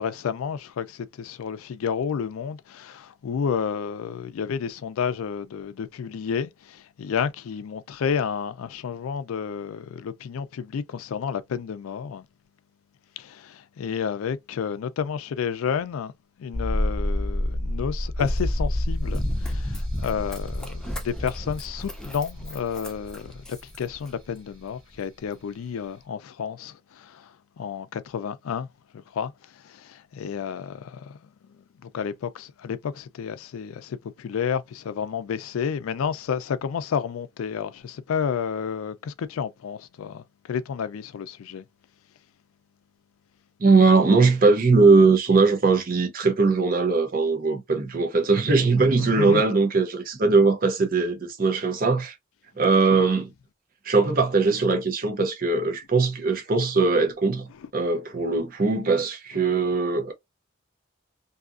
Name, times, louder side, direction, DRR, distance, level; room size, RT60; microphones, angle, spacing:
voice 1, 0.0-12.2 13.2-16.1 16.4-27.3 27.6-28.7 28.9-31.2 31.8-41.6 49.0-49.4, left 7 dB, 85° left, 0.4 m, -31 dB
sound 1, 16.5-23.3 23.6-23.7, left 1 dB, 75° right, 1.2 m, -29 dB
Run, 19.1-24.4 24.9-25.0, equal, 5° left, 0.3 m, -36 dB
voice 2, 43.6-52.2 52.6-53.3 53.8-57.5 57.7-60.1, right 4 dB, 45° right, 0.6 m, -20 dB
2.6 x 2.4 x 2.4 m
head